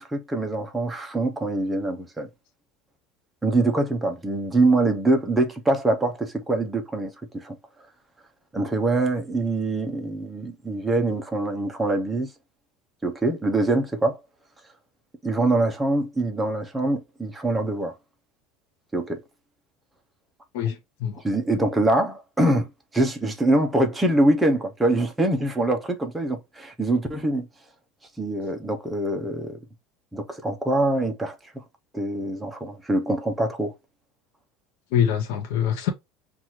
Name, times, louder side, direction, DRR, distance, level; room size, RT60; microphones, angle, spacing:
voice 1, 0.0-2.3 3.4-7.6 8.5-12.3 13.0-14.2 15.2-17.9 18.9-19.2 21.2-22.7 22.9-27.5 28.2-29.6 30.1-31.4 31.9-33.7, right 2 dB, 5° right, 0.6 m, -24 dB
voice 2, 20.5-21.2 34.9-35.9, left 9 dB, 70° left, 0.7 m, -24 dB
5.8 x 2.4 x 3.0 m
cardioid pair, 155°, 0 cm